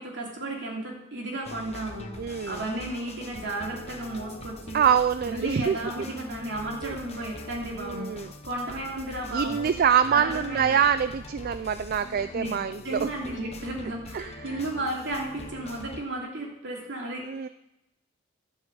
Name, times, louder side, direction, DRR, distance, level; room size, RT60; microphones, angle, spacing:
voice 1, 0.0-4.8 5.3-8.1 8.4-9.7 10.1-10.8 12.3-12.6 12.8-17.3, right 1 dB, 65° right, -1 dB, 3.0 m, -34 dB
sound 1, 1.4-16.0, left 2 dB, 35° left, 0.9 m, -43 dB
voice 2, 2.2-2.6 4.7-5.8 6.8-7.0 7.7-8.3 9.3-13.1 14.1-14.6 17.2-17.5, right 8 dB, 50° right, 12 dB, 0.4 m, -25 dB
12.5 x 5.6 x 7.8 m, 0.91 s
head